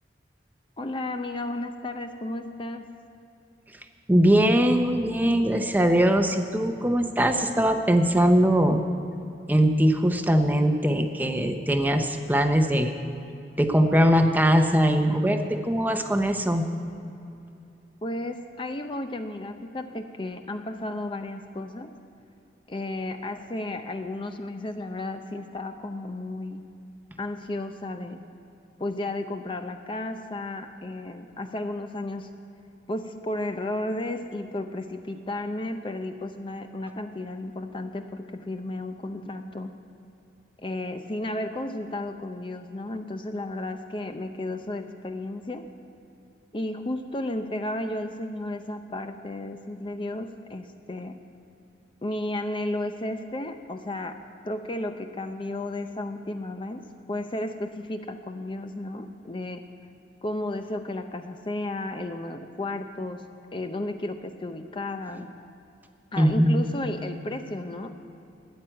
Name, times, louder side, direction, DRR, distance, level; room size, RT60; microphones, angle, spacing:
voice 1, 0.8-2.9 18.0-21.9 22.7-26.7 27.2-28.2 28.8-32.3 32.9-39.8 40.6-45.7 46.5-51.2 52.0-59.6 60.2-65.3 66.1-68.0, left 1 dB, 30° left, 7 dB, 0.6 m, -33 dB
voice 2, 4.1-8.8 9.5-12.9 13.6-16.6 66.2-66.7, equal, 10° right, 6 dB, 0.8 m, -21 dB
13.0 x 9.3 x 8.9 m, 2.7 s
head